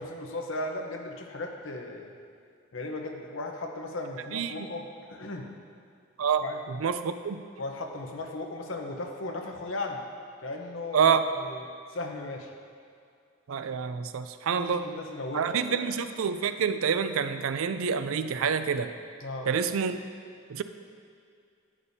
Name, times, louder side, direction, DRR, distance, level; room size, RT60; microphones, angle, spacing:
voice 1, 0.0-2.1 2.7-5.5 6.4-6.6 7.6-10.0 10.4-12.5 14.6-15.9 19.2-19.5, left 2 dB, 70° left, 2 dB, 0.9 m, -36 dB
voice 2, 4.3-4.7 6.2-7.4 10.9-11.2 13.5-15.0 15.3-18.9 19.5-20.0 20.5-20.6, right 6 dB, 80° right, 10 dB, 0.4 m, -27 dB
11.0 x 8.7 x 2.7 m, 2.3 s
head